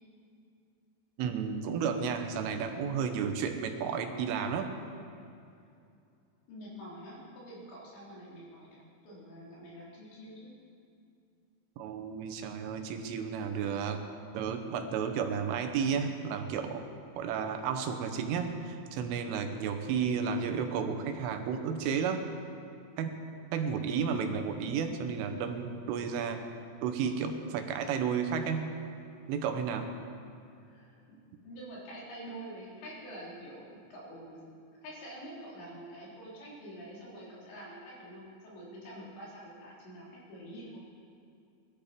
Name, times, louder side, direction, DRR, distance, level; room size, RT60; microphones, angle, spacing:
voice 1, 1.2-4.7 11.8-14.0 14.3-16.8 17.2-22.3 23.0-23.2 23.5-26.4 26.8-28.7 29.3-29.9, right 6 dB, 85° right, 6 dB, 3.6 m, -32 dB
voice 2, 6.5-10.5 30.6-34.4 34.8-40.8, right 1 dB, 65° left, -6 dB, 5.9 m, -47 dB
20.5 x 13.0 x 5.2 m, 2.5 s
omnidirectional pair, 5.5 m